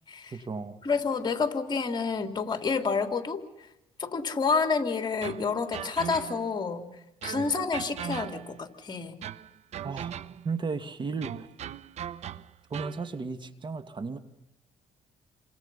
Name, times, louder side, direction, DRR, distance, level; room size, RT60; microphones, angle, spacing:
voice 1, 0.3-0.8 7.4-7.5 9.8-10.2 10.4-11.5 12.7-14.2, right 4 dB, 40° right, 8 dB, 2.4 m, -34 dB
voice 2, 0.8-3.4 4.0-6.8 7.2-9.2, left 5 dB, 35° left, 6 dB, 3.4 m, -29 dB
sound 1, 5.2-6.6 7.2-8.7 9.2-10.6 11.2-13.1, right 9 dB, 60° right, 0.9 m, -39 dB
30.0 x 25.5 x 5.7 m, 0.92 s
cardioid pair, 80°, 12 cm